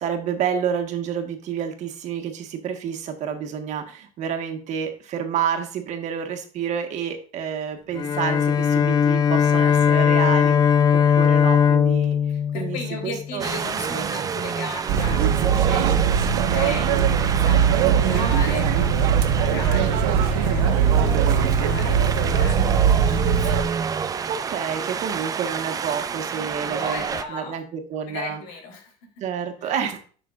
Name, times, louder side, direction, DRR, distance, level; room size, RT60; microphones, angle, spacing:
voice 1, 0.0-12.2 12.5-13.4 13.8-14.3 17.8-18.3 24.3-27.0 27.3-28.4 29.2-30.0, right 8 dB, 50° right, 6 dB, 1.6 m, -29 dB
Bowed string instrument, 7.9-13.4, left 8 dB, 30° left, 0.4 m, -19 dB
voice 2, 12.3-23.9 26.4-27.6 28.1-29.2 29.6-29.7, left 3 dB, 85° left, 2 dB, 3.4 m, -37 dB
Wind, 13.4-27.2, right 6 dB, 25° right, 0.5 m, -29 dB
sound 1, 14.9-23.6, right 7 dB, 90° right, 1.1 m, -20 dB
11.0 x 6.1 x 2.5 m, 0.41 s
cardioid pair, 140°, 15 cm